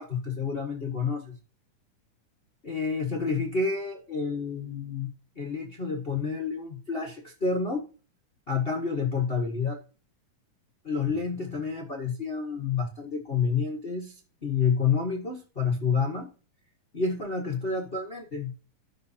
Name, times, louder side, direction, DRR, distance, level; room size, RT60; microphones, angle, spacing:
voice 1, 0.0-1.3 2.6-5.1 5.4-7.8 8.5-9.8 10.8-14.1 14.4-16.3 16.9-18.5, left 5 dB, 75° left, 0 dB, 0.5 m, -29 dB
14.0 x 6.7 x 2.8 m, 0.34 s
omnidirectional pair, 3.7 m